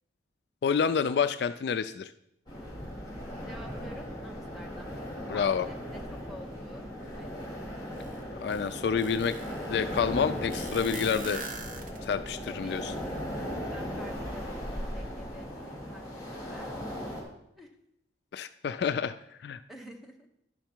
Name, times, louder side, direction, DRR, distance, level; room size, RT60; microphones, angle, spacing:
voice 1, 0.6-2.1 5.3-5.7 8.4-9.4 9.7-11.5 12.0-12.9 18.3-19.1 19.4-19.6, left 6 dB, 60° left, 12 dB, 0.3 m, -28 dB
sound 1, 2.5-17.2, equal, 20° left, 2.5 m, -38 dB
voice 2, 3.4-4.9 5.3-6.9 7.1-8.2 12.4-17.2 17.6-17.7 19.7-20.3, equal, ahead, 1 dB, 1.0 m, -50 dB
sound 2, 8.0-8.1 8.5-9.6 10.5-12.3, right 2 dB, 45° right, 0.9 m, -40 dB
11.0 x 5.7 x 4.5 m, 0.79 s
head